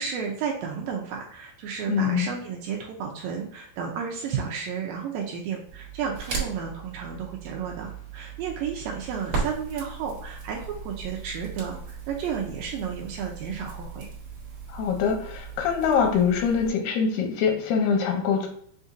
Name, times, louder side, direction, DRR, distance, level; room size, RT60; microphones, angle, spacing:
voice 1, 0.0-14.1, right 7 dB, 80° right, 0 dB, 2.1 m, -32 dB
voice 2, 1.9-2.3 14.7-18.5, left 6 dB, 85° left, 3 dB, 2.7 m, -24 dB
Crackle, 5.7-16.7, right 5 dB, 60° right, 1.5 m, -37 dB
7.1 x 2.5 x 2.6 m, 0.65 s
omnidirectional pair, 4.4 m